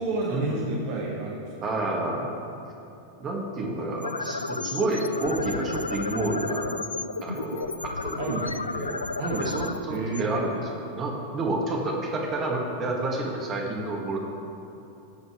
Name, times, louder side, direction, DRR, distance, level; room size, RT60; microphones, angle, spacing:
voice 1, 0.0-1.7 8.1-8.5 9.2-9.6 9.9-10.4, right 2 dB, 50° right, -3 dB, 1.8 m, -30 dB
voice 2, 1.6-2.3 3.2-6.7 7.2-8.5 8.7-9.0 9.4-14.2, right 2 dB, 30° right, -1 dB, 2.2 m, -29 dB
sound 1, 4.0-10.9, left 3 dB, 80° left, 0.4 m, -33 dB
19.0 x 7.8 x 3.4 m, 2.9 s
figure-of-eight pair, 90°, 0 cm